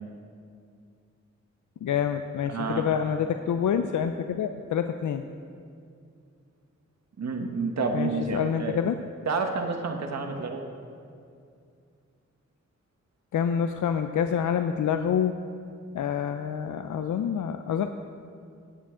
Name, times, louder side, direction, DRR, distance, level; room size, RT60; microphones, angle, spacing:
voice 1, 1.8-5.2 7.9-9.0 13.3-15.3 15.9-17.9, left 8 dB, 85° left, 8 dB, 0.5 m, -27 dB
voice 2, 2.4-2.9 7.2-8.8 9.3-10.6, right 3 dB, 65° right, 4 dB, 1.2 m, -29 dB
16.5 x 9.7 x 3.7 m, 2.4 s
wide cardioid pair, 175°, 29 cm